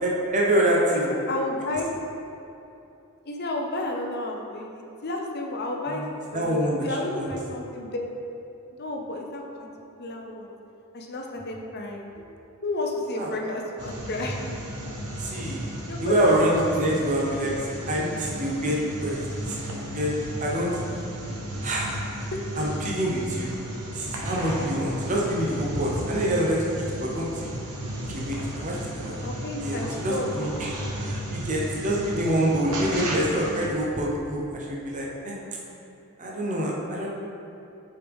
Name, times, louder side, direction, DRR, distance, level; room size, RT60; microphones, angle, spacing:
voice 1, 0.0-1.1 5.9-6.0 6.3-6.9 7.1-7.3 13.2-13.3 15.2-15.6 16.0-17.5 17.9-19.2 19.5-20.7 21.6-22.0 22.6-23.5 23.9-27.5 28.1-29.2 29.6-29.8 30.0-30.7 31.0-35.4 36.2-37.1, right 1 dB, 35° right, -3 dB, 0.8 m, -26 dB
voice 2, 0.9-1.9 3.2-8.1 8.8-9.7 10.0-10.5 10.9-12.1 12.6-14.3 15.8-16.2 21.9-22.0 22.3-22.4 29.2-30.5, left 2 dB, 45° left, 1 dB, 0.7 m, -32 dB
sound 1, 13.8-33.7, equal, 90° right, 1.2 m, -34 dB
7.8 x 5.1 x 3.6 m, 2.7 s
head